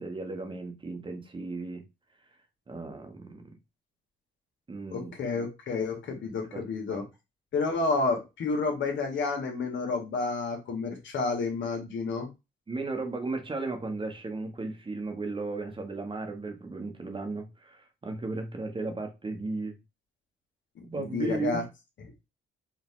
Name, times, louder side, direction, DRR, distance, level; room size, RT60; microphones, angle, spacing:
voice 1, 0.0-1.8 2.7-3.6 4.7-5.1 6.5-7.1 12.7-19.8 20.9-21.7, right 3 dB, 25° right, 1.2 m, -35 dB
voice 2, 4.9-7.0 7.5-12.3 20.9-21.6, left 4 dB, 70° left, 1.8 m, -30 dB
5.0 x 2.8 x 3.7 m
cardioid pair, 90°, 20 cm